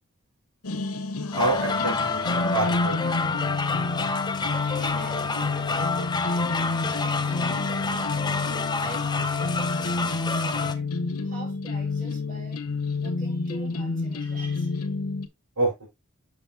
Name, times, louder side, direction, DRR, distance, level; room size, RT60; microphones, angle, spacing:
sound 1, 0.6-15.3, left 3 dB, 80° left, 1.0 m, -29 dB
sound 2, 1.3-10.7, left 4 dB, 20° left, 0.7 m, -28 dB
voice 1, 1.3-2.2 2.5-3.1 15.6-15.9, right 2 dB, 90° right, 5.0 m, -27 dB
voice 2, 4.5-8.2 8.8-10.1 10.4-10.9 11.2-12.6 13.0-14.8, right 3 dB, 40° right, 5.2 m, -44 dB
7.4 x 6.7 x 2.8 m
head